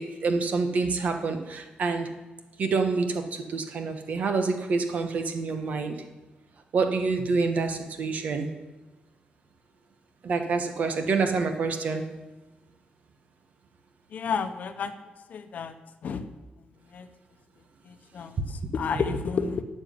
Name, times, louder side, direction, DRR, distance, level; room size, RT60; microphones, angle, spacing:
voice 1, 0.0-2.1 2.6-6.0 6.7-8.5 10.2-12.0, right 4 dB, 55° right, 6 dB, 1.5 m, -27 dB
voice 2, 14.1-14.9 15.3-15.7 16.0-16.2 16.9-17.1 17.9-19.6, left 6 dB, 55° left, 9 dB, 0.9 m, -31 dB
12.5 x 6.3 x 9.8 m, 1.1 s
wide cardioid pair, 150°, 3 cm